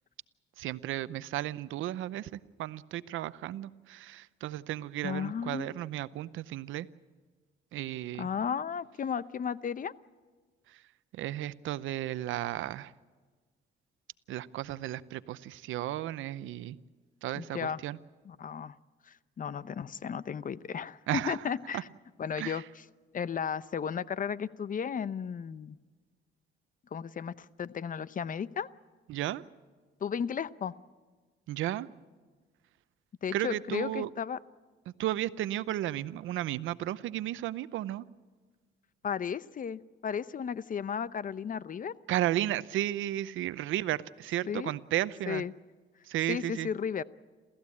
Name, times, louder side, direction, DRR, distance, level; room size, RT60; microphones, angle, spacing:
voice 1, 0.6-6.9 7.7-8.3 10.7-10.8 11.1-12.9 14.3-16.8 17.2-18.0 21.1-21.4 21.7-21.8 22.4-22.6 29.1-29.4 31.5-31.9 33.3-34.1 34.9-38.0 42.1-45.4 46.0-46.7, right 13 dB, 85° right, 16 dB, 0.7 m, -34 dB
voice 2, 5.0-5.7 8.1-9.9 17.3-17.8 18.2-18.8 19.1-21.9 22.2-22.6 23.1-25.8 26.9-28.7 30.0-30.8 33.2-34.4 39.0-41.9 44.5-44.7 45.3-45.5 46.3-47.0, left 7 dB, 45° left, 17 dB, 0.7 m, -34 dB
28.5 x 14.5 x 8.6 m, 1.4 s
cardioid pair, 90°, 20 cm